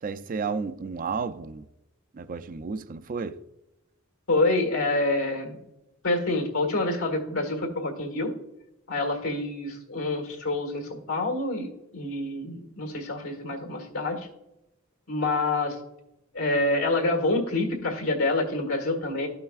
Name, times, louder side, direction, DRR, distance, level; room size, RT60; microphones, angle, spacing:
voice 1, 0.0-1.7 2.1-3.4, right 5 dB, 40° right, 0.4 m, -32 dB
voice 2, 4.3-5.6 6.0-8.3 8.9-14.3 15.1-15.8 16.3-19.3, left 2 dB, 85° left, 1.7 m, -27 dB
13.0 x 5.7 x 2.3 m
head